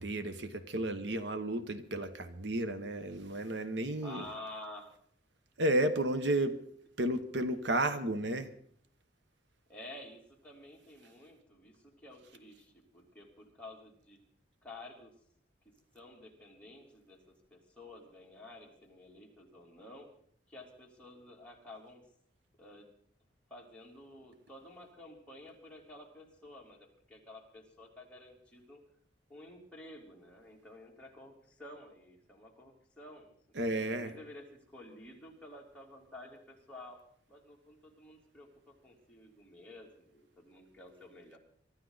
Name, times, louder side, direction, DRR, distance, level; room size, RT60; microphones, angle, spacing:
voice 1, 0.0-4.2 5.6-6.6 7.0-8.5 33.6-34.1, right 1 dB, 75° right, 10 dB, 1.2 m, -32 dB
voice 2, 4.0-5.0 6.2-6.3 9.7-14.2 14.6-15.1 15.9-20.1 20.5-22.0 22.6-22.9 23.5-28.8 29.3-37.0 37.3-41.4, left 1 dB, 5° left, -2 dB, 3.1 m, -51 dB
24.0 x 13.0 x 4.0 m, 0.62 s
head